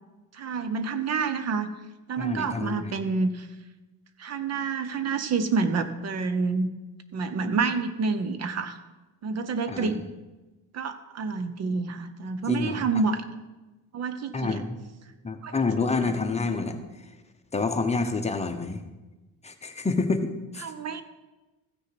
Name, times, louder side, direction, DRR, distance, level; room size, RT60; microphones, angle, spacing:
voice 1, 0.3-1.7 2.1-3.5 4.2-6.7 7.1-8.8 9.2-10.0 10.7-13.2 13.9-14.6 15.4-15.5 20.6-21.0, right 4 dB, 45° right, 11 dB, 0.8 m, -28 dB
voice 2, 2.2-2.9 9.7-9.9 12.5-13.0 14.3-14.8 15.2-16.8 17.5-18.8 19.4-20.7, left 3 dB, 20° left, 6 dB, 0.9 m, -28 dB
14.5 x 6.5 x 5.9 m, 1.1 s
cardioid pair, 125°, 35 cm